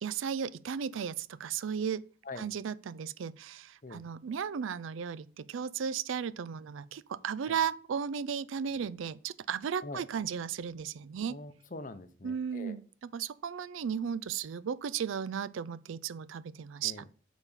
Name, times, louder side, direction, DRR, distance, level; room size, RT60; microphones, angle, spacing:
voice 1, 0.0-2.0 2.4-11.4 12.2-12.8 13.1-16.9, right 7 dB, 85° right, 0.4 m, -35 dB
voice 2, 11.3-12.8 16.8-17.1, left 2 dB, 40° left, 0.7 m, -44 dB
7.0 x 4.1 x 5.5 m
head